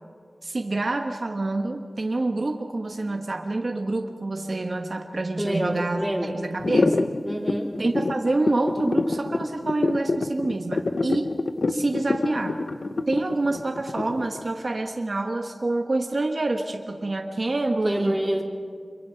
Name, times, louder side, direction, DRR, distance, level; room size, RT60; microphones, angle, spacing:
voice 1, 0.4-6.0 6.3-7.0 7.8-11.3 11.7-12.6 13.1-18.2, right 2 dB, 60° right, 4 dB, 1.3 m, -27 dB
voice 2, 5.4-6.4 7.2-7.7 17.8-18.4, equal, 10° right, -1 dB, 3.4 m, -27 dB
sound 1, 6.6-14.4, left 3 dB, 85° left, 0.9 m, -25 dB
26.5 x 23.0 x 5.8 m, 2.2 s
wide cardioid pair, 60°, 0 cm